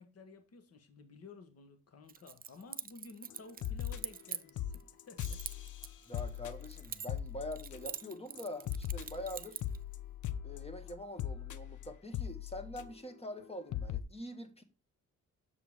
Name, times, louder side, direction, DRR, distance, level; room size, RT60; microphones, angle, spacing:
voice 1, 0.0-5.4, left 4 dB, 50° left, 1.3 m, -54 dB
Keys jangling, 2.1-4.8 5.2-7.3 7.5-9.8, right 7 dB, 30° right, 0.5 m, -44 dB
sound 1, 3.3-3.4 3.6-4.3 4.6-8.1 8.4-13.1 13.4-13.5 13.7-14.0, left 10 dB, 70° left, 0.8 m, -40 dB
voice 2, 6.1-9.6 10.4-14.6, left 1 dB, 20° left, 1.5 m, -44 dB
7.3 x 6.9 x 3.5 m
cardioid pair, 105°, 31 cm